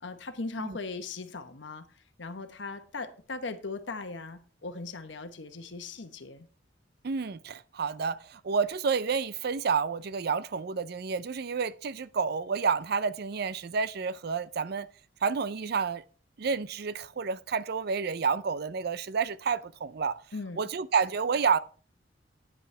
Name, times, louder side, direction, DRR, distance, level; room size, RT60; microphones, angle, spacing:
voice 1, 0.0-1.9 2.2-6.5 20.3-20.6, left 3 dB, 70° left, 1.1 m, -39 dB
voice 2, 7.0-14.9 15.2-16.0 16.4-20.2 20.6-21.6, right 5 dB, 55° right, 0.5 m, -29 dB
9.8 x 8.4 x 3.3 m
head